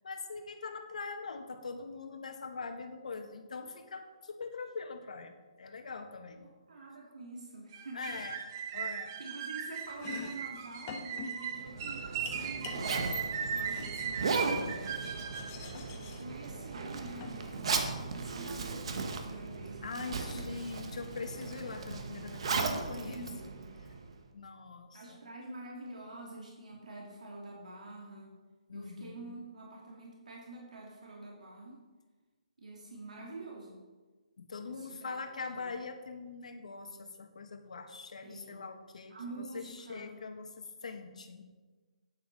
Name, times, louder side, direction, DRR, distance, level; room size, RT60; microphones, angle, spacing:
voice 1, 0.0-6.5 7.9-8.4 8.7-9.1 19.8-23.3 24.3-25.2 28.7-29.4 34.4-41.4, left 4 dB, 70° left, 5 dB, 1.5 m, -43 dB
voice 2, 6.4-8.2 9.2-15.3 15.9-20.5 22.7-23.6 24.9-28.4 28.7-31.8 32.6-33.8 34.7-35.2 35.5-35.7 38.2-38.7 39.1-40.1, right 2 dB, 80° right, -2 dB, 2.6 m, -47 dB
sound 1, 7.7-15.6, right 7 dB, 25° right, 0.8 m, -38 dB
Domestic sounds home sounds, 9.9-18.1, left 5 dB, 20° left, 1.0 m, -47 dB
Zipper (clothing), 11.5-24.2, right 4 dB, 50° right, 1.2 m, -37 dB
9.5 x 8.0 x 5.4 m, 1.3 s
hypercardioid pair, 170°, 4 cm